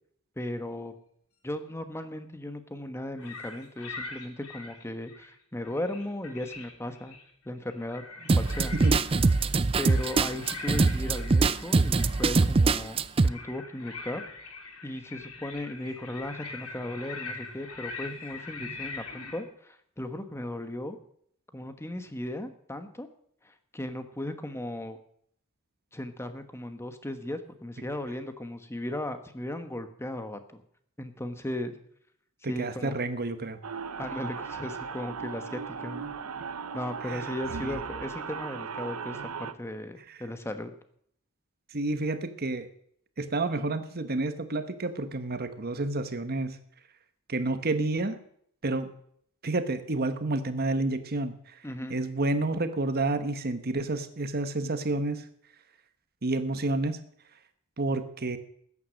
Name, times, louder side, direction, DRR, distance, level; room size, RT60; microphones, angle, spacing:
voice 1, 0.4-0.9 1.4-7.2 7.4-8.0 8.4-8.8 9.8-14.2 14.8-21.0 21.5-23.1 23.4-25.0 25.9-30.6 31.0-31.7 32.5-33.0 34.0-36.1 36.7-40.7 51.6-51.9, left 1 dB, 10° left, 9 dB, 1.1 m, -36 dB
sound 1, 3.2-5.3 5.6-7.3 7.7-19.4, left 3 dB, 90° left, 3.3 m, -43 dB
sound 2, 8.3-13.3, right 3 dB, 25° right, 0.4 m, -23 dB
voice 2, 32.4-33.6 37.1-37.3 37.6-37.8 41.7-42.7 43.2-46.6 47.3-48.2 48.6-48.9 49.4-51.4 51.9-55.2 56.2-57.0 57.8-58.4, right 2 dB, 45° right, 10 dB, 1.2 m, -29 dB
sound 3, 33.6-39.5, right 6 dB, 85° right, 0.8 m, -37 dB
14.0 x 9.7 x 6.4 m, 0.67 s
head